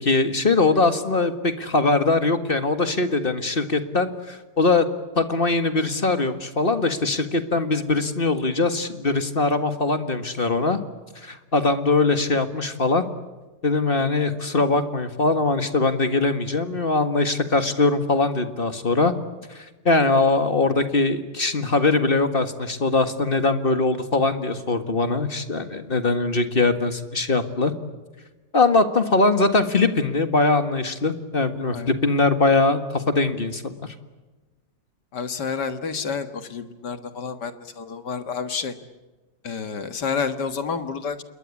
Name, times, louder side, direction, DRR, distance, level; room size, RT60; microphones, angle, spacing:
voice 1, 0.0-4.9 5.2-10.8 11.2-13.0 13.6-19.1 19.5-27.7 28.5-33.9, left 3 dB, 30° left, 9 dB, 1.8 m, -21 dB
voice 2, 35.1-38.8 39.4-41.2, left 5 dB, 60° left, 9 dB, 2.2 m, -29 dB
27.5 x 22.0 x 8.5 m, 1.2 s
omnidirectional pair, 2.0 m